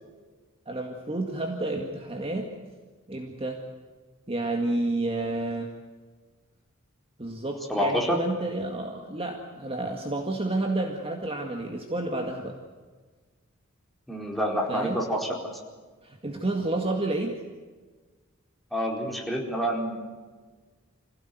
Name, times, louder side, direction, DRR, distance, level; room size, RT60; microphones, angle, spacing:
voice 1, 0.7-2.5 3.1-3.6 4.3-5.7 7.2-12.6 14.7-15.0 16.0-17.4, right 2 dB, 25° right, 2 dB, 2.0 m, -30 dB
voice 2, 7.7-8.2 14.1-15.5 18.7-20.0, equal, ahead, -1 dB, 4.4 m, -27 dB
26.0 x 17.0 x 9.4 m, 1.4 s
head